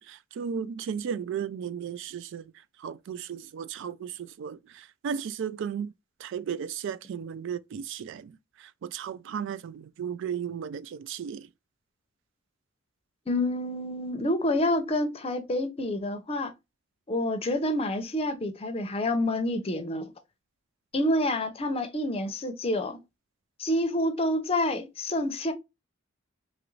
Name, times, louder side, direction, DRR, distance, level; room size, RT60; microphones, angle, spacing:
voice 1, 0.0-2.5 2.8-5.9 6.2-11.5, right 7 dB, 65° right, 0.3 m, -35 dB
voice 2, 13.3-16.5 17.1-20.1 20.9-23.0 23.6-25.5, left 1 dB, 30° left, 0.6 m, -28 dB
3.0 x 2.5 x 3.0 m
head